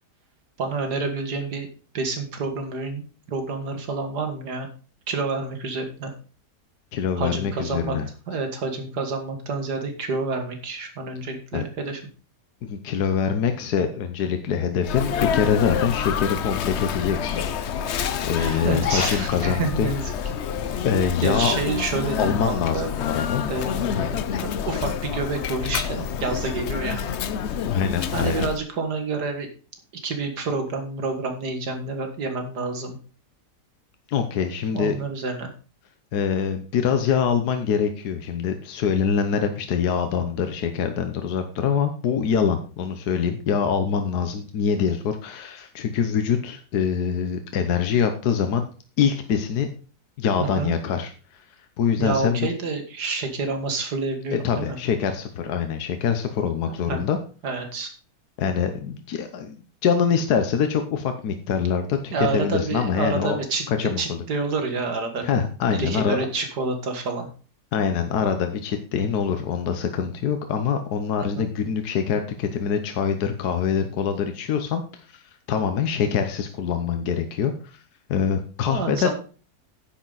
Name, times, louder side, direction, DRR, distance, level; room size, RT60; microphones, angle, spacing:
voice 1, 0.6-1.7 1.9-4.7 5.1-6.1 7.2-8.0 8.3-12.0 18.4-20.1 21.2-22.9 23.5-24.2 24.7-27.1 28.1-29.5 30.0-33.0 34.7-35.5 50.4-50.7 52.0-54.8 56.7-57.0 57.4-57.9 62.1-65.4 65.7-67.3 71.4-71.5 78.7-79.1, right 3 dB, 85° right, 6 dB, 2.4 m, -28 dB
voice 2, 6.9-8.0 11.5-11.7 12.6-17.4 18.2-19.9 20.8-21.6 22.2-23.5 24.0-24.1 27.7-28.5 34.1-34.9 36.1-48.6 49.0-49.7 50.2-51.1 51.8-52.5 54.4-57.2 58.4-59.5 59.8-63.4 63.7-64.2 65.2-66.2 67.7-74.8 75.1-75.2 75.5-77.5 78.1-79.1, left 7 dB, 75° left, 7 dB, 1.5 m, -24 dB
Sneeze, 14.8-28.6, left 8 dB, 60° left, 0.8 m, -28 dB
10.5 x 8.4 x 4.0 m, 0.37 s
omnidirectional pair, 1.7 m